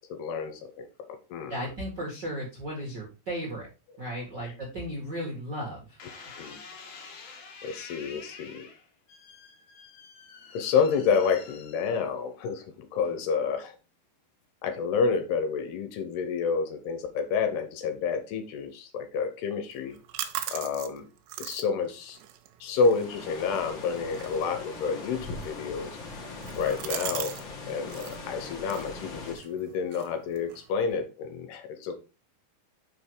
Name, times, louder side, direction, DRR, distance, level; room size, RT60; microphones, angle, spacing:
voice 1, 0.1-1.6 4.4-4.5 6.4-6.6 7.6-8.7 10.5-13.7 14.6-20.0 20.5-21.1 21.4-22.2 22.6-26.0 26.6-27.4 27.7-31.9, left 5 dB, 75° left, 8 dB, 2.8 m, -29 dB
voice 2, 1.5-3.7 4.0-6.0, equal, 45° right, -3 dB, 1.4 m, -35 dB
sound 1, 6.0-12.4 13.0-13.5, left 5 dB, 60° left, 2.2 m, -48 dB
sound 2, 19.7-27.4 27.7-28.2 28.6-30.9, right 12 dB, 85° right, 3.0 m, -41 dB
sound 3, 22.8-29.3, left 3 dB, 45° left, 1.7 m, -41 dB
6.3 x 5.2 x 4.8 m, 0.31 s
omnidirectional pair, 5.0 m